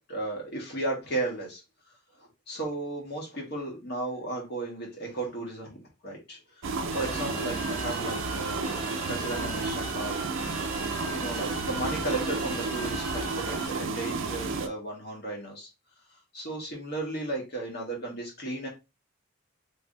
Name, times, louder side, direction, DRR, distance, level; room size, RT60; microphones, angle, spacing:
voice 1, 0.1-1.6 2.2-5.8 6.0-6.4 6.9-10.2 11.1-15.7 16.3-18.7, right 2 dB, 50° left, -1 dB, 1.6 m, -34 dB
sound 1, 6.6-14.7, right 4 dB, 70° right, 0.5 m, -32 dB
sound 2, 6.9-13.7, right 1 dB, 5° right, 1.0 m, -39 dB
3.4 x 3.3 x 2.5 m, 0.25 s
head